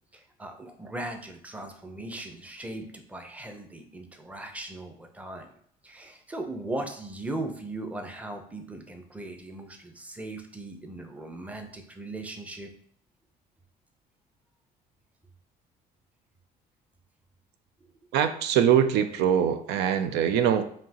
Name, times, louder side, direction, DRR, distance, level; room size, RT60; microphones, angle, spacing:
voice 1, 0.1-5.5 5.8-12.7, right 2 dB, 10° right, 4 dB, 0.6 m, -38 dB
voice 2, 18.1-20.6, right 9 dB, 85° right, 9 dB, 0.4 m, -23 dB
5.1 x 2.8 x 2.9 m, 0.62 s
cardioid pair, 110°, 17 cm